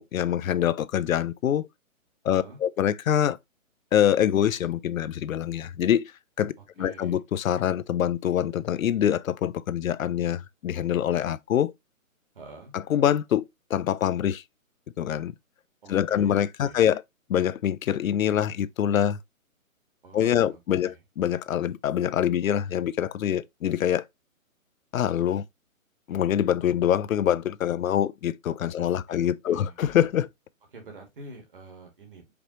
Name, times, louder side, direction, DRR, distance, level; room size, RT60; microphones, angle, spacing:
voice 1, 0.0-1.7 2.2-3.4 3.9-6.1 6.4-11.7 12.7-13.5 13.7-14.4 15.0-15.3 15.9-17.0 17.3-19.2 20.1-24.0 24.9-25.4 26.1-30.3, left 10 dB, 75° left, 0.5 m, -25 dB
voice 2, 2.3-2.6 6.6-7.2 12.3-12.7 15.8-16.3 16.6-16.8 20.0-21.0 28.8-29.8 30.7-32.2, right 3 dB, 40° right, 1.6 m, -47 dB
5.1 x 3.0 x 2.9 m
hypercardioid pair, 175°, 41 cm